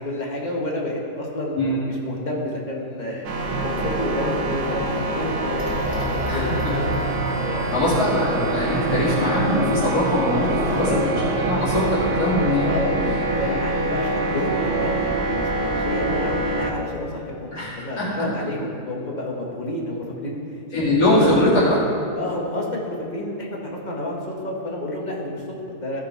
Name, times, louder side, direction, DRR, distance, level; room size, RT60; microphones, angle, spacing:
voice 1, 0.0-3.2 3.6-7.0 7.2-7.9 10.6-11.0 12.6-20.4 20.7-20.9 21.4-21.5 22.1-26.0, left 1 dB, 30° left, -2 dB, 1.4 m, -30 dB
sound 1, 3.2-16.7, right 2 dB, 85° right, 1.4 m, -26 dB
sound 2, 3.4-14.0, right 1 dB, 30° right, 1.6 m, -29 dB
voice 2, 6.2-6.7 7.7-11.0 11.4-12.7 13.4-13.5 17.5-17.7 18.0-18.1 20.7-21.8, left 1 dB, 90° left, -11 dB, 3.0 m, -21 dB
15.0 x 5.3 x 4.6 m, 2.6 s
omnidirectional pair, 1.6 m